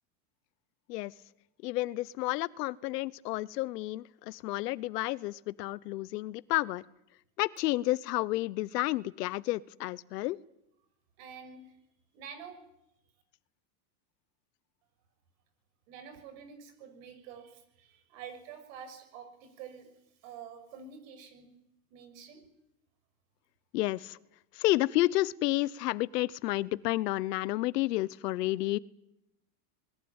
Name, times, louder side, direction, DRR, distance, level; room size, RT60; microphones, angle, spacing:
voice 1, 1.6-6.8 7.4-10.4 23.7-24.2 24.5-28.8, left 18 dB, 75° left, 20 dB, 0.9 m, -31 dB
voice 2, 11.2-11.8 12.1-12.6 15.9-19.9 20.2-21.5 21.9-22.4, right 7 dB, 55° right, 9 dB, 6.4 m, -48 dB
26.5 x 21.5 x 8.8 m, 0.84 s
supercardioid pair, 165°, 48 cm